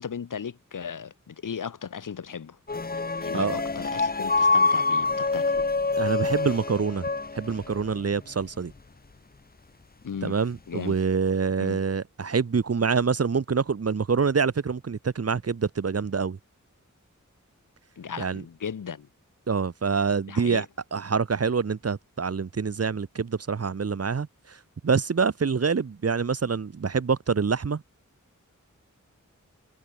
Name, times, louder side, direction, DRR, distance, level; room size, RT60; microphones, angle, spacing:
voice 1, 0.0-2.6 3.2-5.7 10.0-10.4 10.7-11.0 11.6-11.8 18.0-19.1 20.3-20.7, left 7 dB, 80° left, 0.7 m, -36 dB
sound 1, 2.7-8.0, left 3 dB, 30° left, 0.7 m, -26 dB
voice 2, 6.0-7.1 7.3-8.7 10.2-16.4 18.2-18.4 19.5-20.7 20.9-24.3 24.8-27.8, right 5 dB, 50° right, 0.7 m, -26 dB
wide cardioid pair, 50°, 31 cm